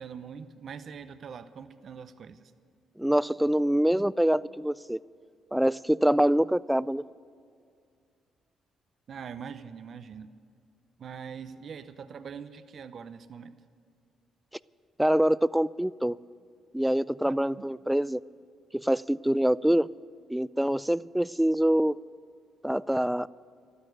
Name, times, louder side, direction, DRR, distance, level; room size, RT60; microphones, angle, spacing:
voice 1, 0.0-2.4 9.1-10.3 11.0-13.5 17.2-17.4, right 6 dB, 55° right, 11 dB, 0.8 m, -42 dB
voice 2, 3.0-5.0 5.5-7.0 15.0-16.2 16.7-18.2 18.7-19.9 20.3-22.0 22.6-23.3, right 1 dB, 5° right, 19 dB, 0.3 m, -25 dB
13.5 x 13.0 x 8.0 m, 2.3 s
cardioid pair, 90°, 0 cm